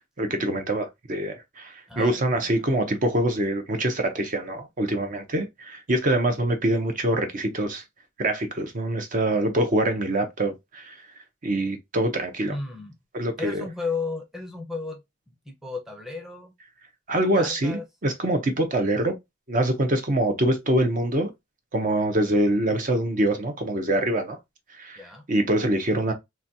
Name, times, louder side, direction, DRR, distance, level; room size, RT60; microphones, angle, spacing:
voice 1, 0.2-7.8 8.2-12.6 13.1-13.6 17.1-19.1 19.5-21.3 21.7-24.4 24.7-25.0 25.3-26.1, right 1 dB, 40° right, 0.6 m, -25 dB
voice 2, 1.9-2.5 12.5-12.9 13.4-16.5 17.3-17.8 25.0-25.2, left 4 dB, ahead, 0.7 m, -34 dB
3.9 x 2.2 x 2.6 m
head